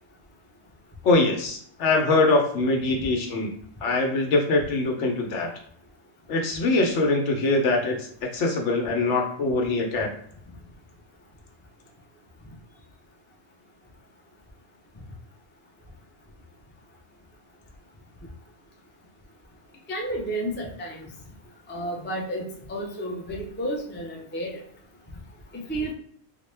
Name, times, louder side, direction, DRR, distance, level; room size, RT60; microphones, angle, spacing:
voice 1, 1.0-3.5 3.8-5.5 6.3-10.1, left 2 dB, 65° left, 2 dB, 1.0 m, -23 dB
voice 2, 19.9-21.1 21.7-24.6 25.5-25.9, right 1 dB, 20° left, 0 dB, 0.3 m, -31 dB
3.9 x 2.1 x 3.3 m, 0.63 s
omnidirectional pair, 1.3 m